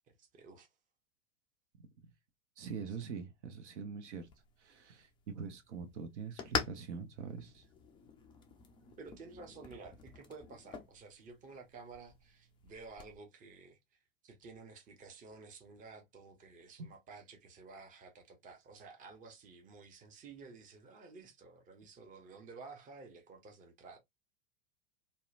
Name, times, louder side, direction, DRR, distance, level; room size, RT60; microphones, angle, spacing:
voice 1, 0.1-0.7 9.0-24.0, right 4 dB, 20° right, 0.7 m, -53 dB
voice 2, 2.6-4.3 4.6-7.7 16.8-16.9, right 6 dB, 65° right, 0.8 m, -44 dB
sound 1, 4.2-13.2, left 6 dB, 15° left, 0.3 m, -45 dB
2.8 x 2.1 x 2.4 m
figure-of-eight pair, 90°, 38 cm